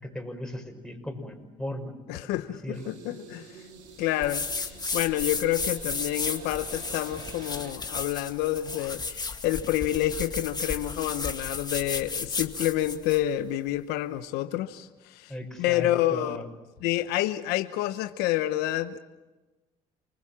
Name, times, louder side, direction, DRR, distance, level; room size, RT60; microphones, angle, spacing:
voice 1, 0.0-2.9 15.3-16.5, left 1 dB, 5° left, 3 dB, 6.1 m, -37 dB
voice 2, 2.1-3.6 4.0-15.3 15.6-16.4 16.8-19.0, left 14 dB, 75° left, 10 dB, 1.0 m, -28 dB
sound 1, 2.7-7.7, right 6 dB, 85° right, 2.9 m, -48 dB
sound 2, 4.2-13.3, left 4 dB, 25° left, 2.1 m, -34 dB
29.0 x 20.5 x 7.5 m, 1.1 s
supercardioid pair, 65°, 17 cm